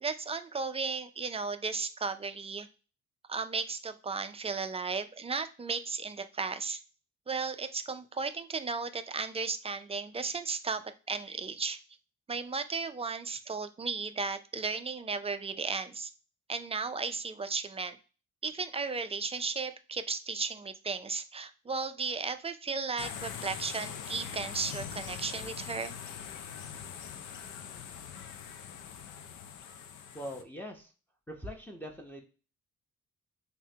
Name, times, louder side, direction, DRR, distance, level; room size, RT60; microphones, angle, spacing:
voice 1, 0.0-2.7 3.3-6.8 7.3-11.8 12.3-16.1 16.5-18.0 18.4-26.0, right 4 dB, 20° right, 10 dB, 0.3 m, -35 dB
sound 1, 23.0-30.4, left 8 dB, 90° left, 0.5 m, -42 dB
voice 2, 30.1-30.9 31.3-32.2, equal, 5° left, 0 dB, 0.7 m, -42 dB
5.5 x 2.1 x 2.7 m, 0.34 s
cardioid pair, 90°, 30 cm